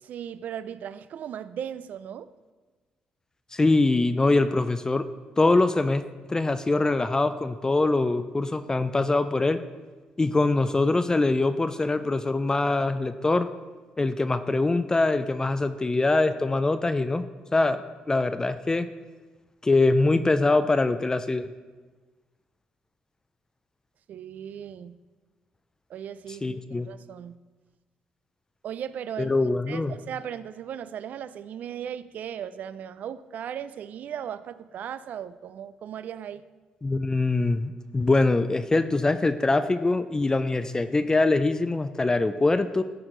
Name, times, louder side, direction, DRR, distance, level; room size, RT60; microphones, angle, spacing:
voice 1, 0.0-2.3 24.1-25.0 25.9-27.4 28.6-29.4 29.7-36.4, right 9 dB, 65° right, 15 dB, 0.3 m, -37 dB
voice 2, 3.5-5.1 5.4-9.6 10.2-13.5 14.0-17.2 17.5-17.8 18.1-18.9 19.6-21.5 26.4-26.9 29.2-30.0 36.8-42.8, left 2 dB, 20° left, 11 dB, 0.4 m, -23 dB
13.5 x 4.5 x 3.8 m, 1.3 s
supercardioid pair, 65°, 3 cm